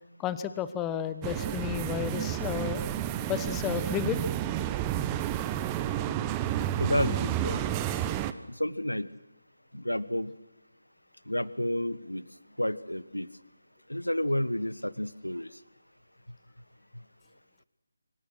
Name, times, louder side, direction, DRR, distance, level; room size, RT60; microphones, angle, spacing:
voice 1, 0.2-2.8 3.3-4.2, left 10 dB, 10° left, 12 dB, 1.1 m, -32 dB
sound 1, 1.2-8.3, right 11 dB, 15° right, 0.9 m, -31 dB
voice 2, 6.8-7.6 8.6-9.1 9.7-10.3 11.3-12.2 12.6-13.3 13.9-15.5, left 1 dB, 90° left, 17 dB, 1.4 m, -30 dB
26.0 x 25.5 x 6.4 m, 1.0 s
figure-of-eight pair, 155°, 0 cm